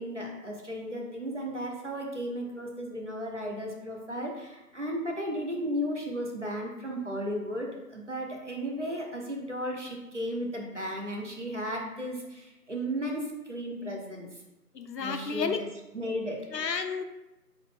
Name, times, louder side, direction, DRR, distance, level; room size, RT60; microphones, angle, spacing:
voice 1, 0.0-14.3 15.0-15.7 15.9-16.5, equal, 45° right, 0 dB, 0.6 m, -34 dB
voice 2, 14.7-15.6 16.5-17.0, left 5 dB, 85° left, 7 dB, 0.6 m, -31 dB
3.9 x 2.6 x 3.5 m, 0.96 s
figure-of-eight pair, 165°, 49 cm